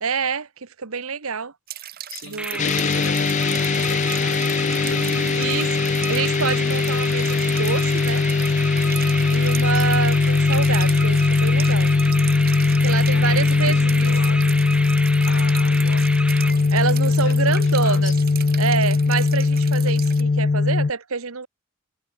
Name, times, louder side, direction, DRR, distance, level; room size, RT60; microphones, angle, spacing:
voice 1, 0.0-1.5 2.2-2.7 4.8-5.7 6.1-8.2 9.3-11.9 12.8-14.1 16.7-18.1 18.6-21.5, right 5 dB, 80° right, 1.2 m, -27 dB
sound 1, 1.7-20.2, right 12 dB, 45° right, 1.5 m, -38 dB
voice 2, 2.1-6.0 9.7-10.1 13.1-14.7 15.2-16.7 17.0-18.1, left 3 dB, 60° left, 4.7 m, -38 dB
sound 2, 2.4-17.0, right 1 dB, 5° right, 1.6 m, -31 dB
sound 3, 2.6-20.9, left 4 dB, 35° left, 0.3 m, -20 dB
head